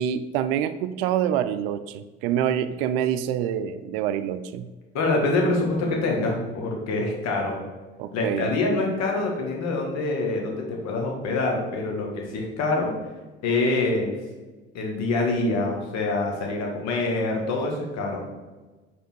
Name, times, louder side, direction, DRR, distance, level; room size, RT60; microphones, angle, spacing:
voice 1, 0.0-4.7 8.0-8.5, right 9 dB, 65° right, 12 dB, 0.5 m, -26 dB
voice 2, 4.9-7.6 8.1-12.9 13.4-14.1 14.7-18.2, left 2 dB, 55° left, 0 dB, 1.7 m, -25 dB
5.7 x 4.0 x 4.3 m, 1.2 s
figure-of-eight pair, 55°, 31 cm